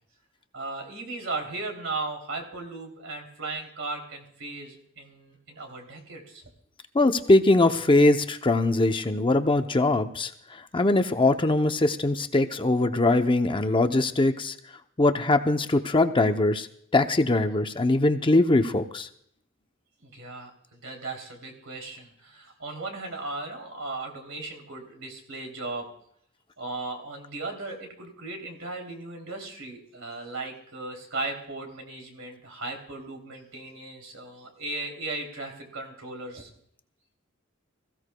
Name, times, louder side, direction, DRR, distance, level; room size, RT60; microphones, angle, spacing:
voice 1, 0.5-6.4 20.0-25.9 26.6-36.5, right 3 dB, 70° right, 2 dB, 3.1 m, -37 dB
voice 2, 6.9-14.6 15.0-16.7 16.9-19.1, left 2 dB, 25° left, 7 dB, 0.7 m, -22 dB
25.5 x 15.5 x 2.3 m, 0.68 s
head